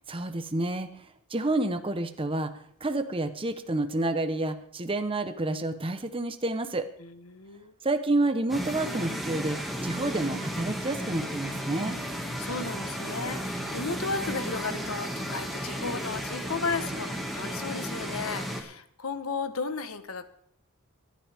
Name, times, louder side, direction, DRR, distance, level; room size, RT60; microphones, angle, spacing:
voice 1, 0.1-0.9 1.3-2.5 2.8-6.8 7.8-12.0, right 2 dB, 25° right, 8 dB, 0.9 m, -29 dB
voice 2, 7.0-7.7 12.4-20.3, left 4 dB, 75° left, 10 dB, 1.2 m, -34 dB
sound 1, 8.5-18.6, equal, ahead, 2.0 m, -34 dB
23.5 x 10.5 x 3.5 m, 0.64 s
head